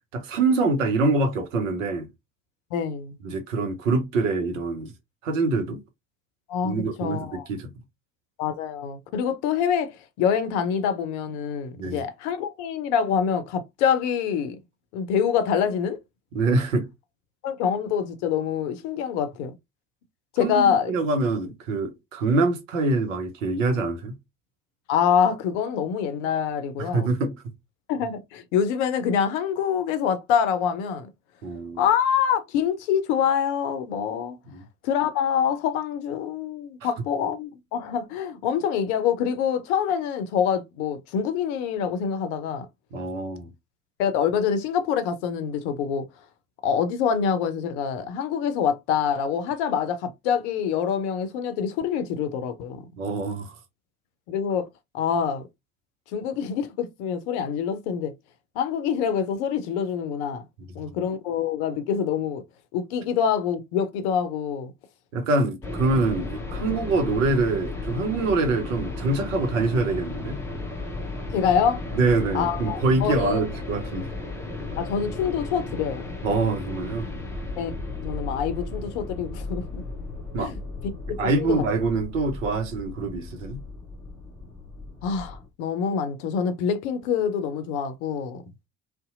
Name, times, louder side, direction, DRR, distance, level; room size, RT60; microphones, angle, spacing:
voice 1, 0.1-2.1 3.2-4.9 5.2-5.8 6.6-7.7 11.8-12.0 16.3-16.9 20.4-24.1 26.8-27.3 31.4-31.8 34.5-34.6 42.9-43.5 53.0-53.5 65.1-70.4 71.9-74.1 76.2-77.1 80.3-80.5 81.2-83.6, right 3 dB, 75° right, 0.7 m, -25 dB
voice 2, 2.7-3.2 6.5-7.5 8.4-14.6 14.9-16.0 17.4-19.5 20.3-20.9 24.9-27.1 27.9-31.1 31.8-34.4 34.8-42.7 44.0-46.0 46.6-52.8 54.3-54.7 54.9-55.4 56.1-58.1 58.6-60.4 60.7-62.4 62.7-64.7 71.3-71.8 72.3-73.4 74.8-76.1 77.6-77.7 78.0-79.8 80.4-80.6 81.2-81.6 85.0-88.4, left 7 dB, 60° left, 0.6 m, -25 dB
sound 1, 65.6-85.5, left 2 dB, 5° left, 0.6 m, -35 dB
2.6 x 2.2 x 2.5 m
figure-of-eight pair, 55°, 40 cm